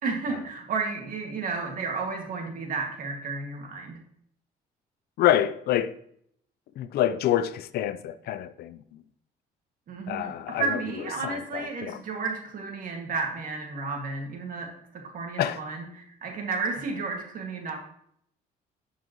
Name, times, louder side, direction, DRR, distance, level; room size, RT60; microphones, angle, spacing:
voice 1, 0.0-4.0 9.9-17.8, right 4 dB, 55° right, 2.1 m, -32 dB
voice 2, 5.2-5.9 6.8-9.0 10.1-10.8 11.2-12.0 15.4-15.6, left 12 dB, 70° left, 0.6 m, -27 dB
11.5 x 5.5 x 3.1 m
cardioid pair, 110°, 17 cm